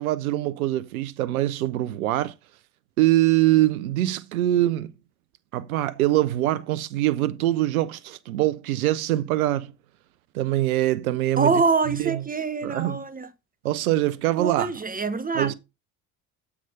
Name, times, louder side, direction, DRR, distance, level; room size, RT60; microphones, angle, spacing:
voice 1, 0.0-2.3 3.0-4.9 5.5-9.7 10.3-11.6 11.9-12.2 12.6-13.0 13.6-14.7 15.3-15.5, right 15 dB, 85° right, 0.6 m, -23 dB
voice 2, 11.4-13.3 14.4-15.5, right 4 dB, 20° right, 0.8 m, -25 dB
7.6 x 3.5 x 5.4 m
hypercardioid pair, 55°, 42 cm